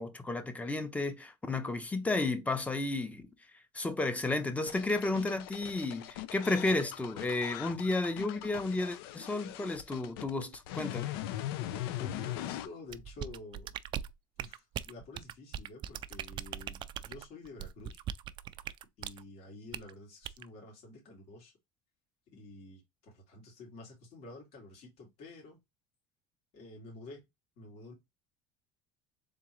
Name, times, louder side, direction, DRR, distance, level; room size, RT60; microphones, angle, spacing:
voice 1, 0.0-3.3 3.7-11.1, left 2 dB, 10° left, 0.8 m, -32 dB
sound 1, 4.7-12.7, left 13 dB, 90° left, 0.5 m, -40 dB
voice 2, 11.6-13.7 14.4-18.0 19.0-21.5 22.3-25.6 26.5-27.3 27.6-27.9, left 3 dB, 60° left, 2.5 m, -49 dB
sound 2, 12.9-19.2 19.7-19.9 20.2-20.5, right 10 dB, 40° right, 0.3 m, -40 dB
3.7 x 3.7 x 3.0 m
supercardioid pair, 125°, 12 cm